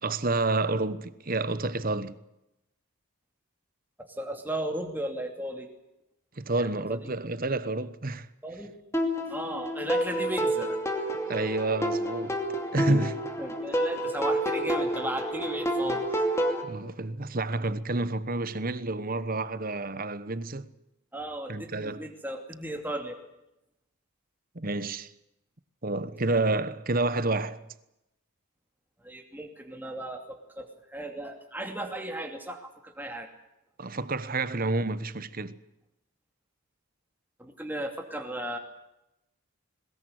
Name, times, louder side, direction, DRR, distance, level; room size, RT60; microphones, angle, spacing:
voice 1, 0.0-2.2 6.4-8.3 11.3-12.4 12.7-13.2 16.6-20.7 21.5-22.1 24.5-25.1 25.8-27.6 33.8-35.6, right 2 dB, 40° right, 1.1 m, -29 dB
voice 2, 4.0-5.7 6.6-7.1 8.4-8.7 9.3-11.1 13.4-16.0 21.1-23.2 29.0-33.3 37.4-38.6, right 1 dB, 10° right, 2.6 m, -36 dB
sound 1, 8.9-16.6, equal, 10° left, 2.6 m, -29 dB
21.5 x 20.5 x 8.1 m
head